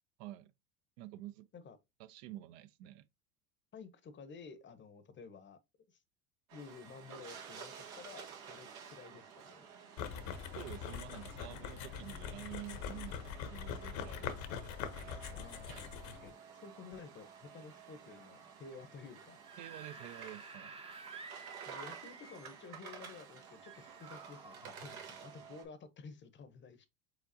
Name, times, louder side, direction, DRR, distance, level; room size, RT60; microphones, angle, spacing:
voice 1, 0.2-0.5 1.0-1.5 2.0-3.1 10.6-14.4 14.6-15.1 19.6-20.8, right 14 dB, 60° right, 0.6 m, -49 dB
voice 2, 3.7-5.6 6.5-9.7 14.1-14.4 15.3-19.4 21.7-26.9, left 5 dB, 25° left, 0.8 m, -52 dB
sound 1, 6.5-25.6, right 7 dB, 90° right, 1.3 m, -52 dB
sound 2, 10.0-16.3, left 7 dB, 65° left, 0.9 m, -43 dB
Screaming / Screech, 19.3-22.7 23.6-24.7, right 5 dB, 15° right, 0.6 m, -51 dB
5.0 x 3.9 x 2.7 m
hypercardioid pair, 90°, 42 cm